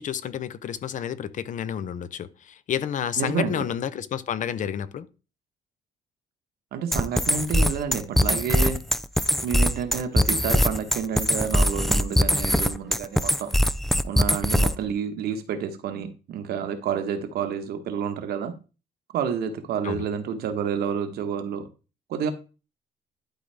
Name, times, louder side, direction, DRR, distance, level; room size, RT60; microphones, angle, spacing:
voice 1, 0.0-5.1 19.8-20.1, left 9 dB, 50° left, 0.7 m, -30 dB
voice 2, 3.2-3.7 6.7-8.8 9.4-13.5 14.0-18.5 19.1-21.6 22.1-22.3, right 7 dB, 70° right, 1.2 m, -29 dB
sound 1, 6.9-14.9, equal, ahead, 0.3 m, -22 dB
11.5 x 4.0 x 3.4 m
cardioid pair, 110°, 17 cm